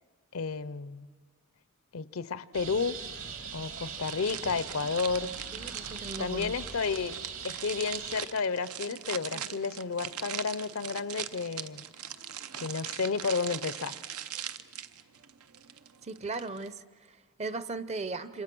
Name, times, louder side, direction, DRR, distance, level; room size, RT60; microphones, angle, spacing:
voice 1, 0.3-1.1 1.9-3.0 3.5-5.4 6.2-7.1 7.4-11.8 12.6-14.0, left 5 dB, 70° left, 17 dB, 0.6 m, -32 dB
sound 1, 2.5-8.2, right 6 dB, 70° right, 2.3 m, -41 dB
sound 2, 4.1-16.7, right 10 dB, 90° right, 0.8 m, -41 dB
voice 2, 5.5-6.5 16.0-18.4, right 3 dB, 30° right, 15 dB, 0.6 m, -37 dB
27.5 x 26.0 x 6.1 m, 1.5 s
head